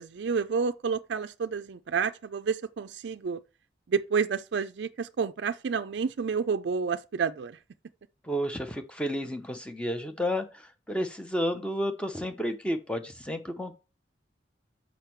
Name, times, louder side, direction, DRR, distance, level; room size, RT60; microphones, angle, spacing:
voice 1, 0.0-3.4 3.9-7.6, right 5 dB, 65° right, 0.4 m, -30 dB
voice 2, 8.2-13.7, equal, 5° left, 0.8 m, -31 dB
6.5 x 5.2 x 4.5 m
head